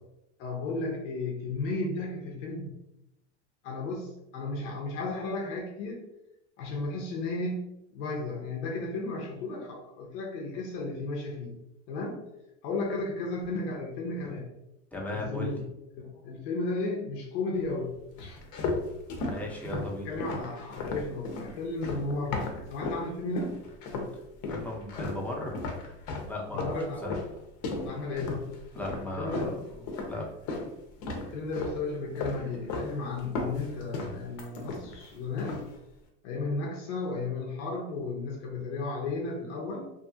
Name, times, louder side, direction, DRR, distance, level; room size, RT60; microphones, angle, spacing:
voice 1, 0.4-2.7 3.6-6.0 6.6-11.6 11.9-12.2 12.6-14.5 15.1-15.7 15.9-18.4 20.0-23.6 26.5-27.0 27.8-28.5 29.2-29.6 31.2-35.6 36.2-39.9, left 3 dB, 90° left, -1 dB, 0.7 m, -34 dB
voice 2, 14.9-15.5 19.3-20.1 24.5-25.6 26.3-26.7 27.0-27.2 28.7-30.2, left 1 dB, 5° left, -3 dB, 0.6 m, -36 dB
sound 1, 18.2-23.1 23.4-24.1 24.4-30.7 31.0-31.8 32.2-32.9 33.2-35.1 35.4-35.7, left 3 dB, 55° left, 0.7 m, -35 dB
2.7 x 2.4 x 2.7 m, 0.87 s
supercardioid pair, 115°, 35 cm